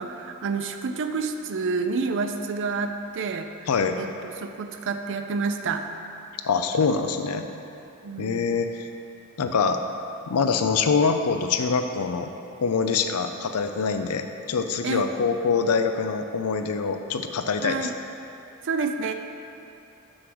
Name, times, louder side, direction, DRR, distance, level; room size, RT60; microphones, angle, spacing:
voice 1, 0.0-3.7 4.0-5.8 8.0-8.6 14.8-15.1 17.6-17.9 18.6-19.1, right 4 dB, 60° right, 7 dB, 0.5 m, -29 dB
voice 2, 3.7-4.0 6.4-7.5 8.2-8.9 9.4-9.8 10.3-12.3 12.6-17.9, left 5 dB, 85° left, 7 dB, 0.5 m, -24 dB
6.3 x 4.8 x 6.2 m, 2.8 s
head